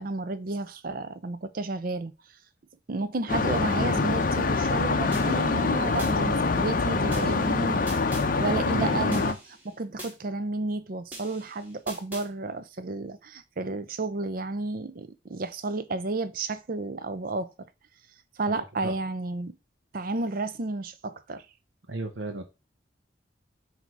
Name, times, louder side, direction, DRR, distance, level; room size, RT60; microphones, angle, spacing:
voice 1, 0.0-2.1 2.9-7.8 8.4-9.4 9.6-17.5 18.4-19.6 19.9-21.4, right 2 dB, 50° right, 0.6 m, -32 dB
sound 1, 3.3-9.3, left 4 dB, 45° left, 0.6 m, -25 dB
sound 2, 5.1-6.1 7.1-8.3 9.1-10.1 11.1-12.3, right 1 dB, 10° right, 2.1 m, -43 dB
voice 2, 8.7-9.2 18.5-18.9 21.9-22.4, right 2 dB, 75° right, 0.9 m, -34 dB
7.9 x 2.8 x 4.6 m
head